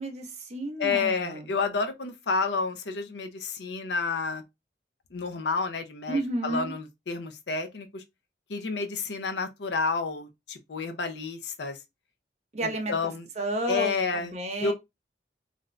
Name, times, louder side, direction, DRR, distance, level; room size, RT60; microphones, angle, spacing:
voice 1, 0.0-1.5 6.1-6.7 12.5-12.9 13.4-14.7, right 1 dB, 40° right, 0.8 m, -31 dB
voice 2, 0.8-4.4 5.1-8.0 8.5-11.8 12.6-13.3 13.7-14.3 14.6-14.7, left 4 dB, 75° left, 0.6 m, -30 dB
2.5 x 2.5 x 3.1 m
head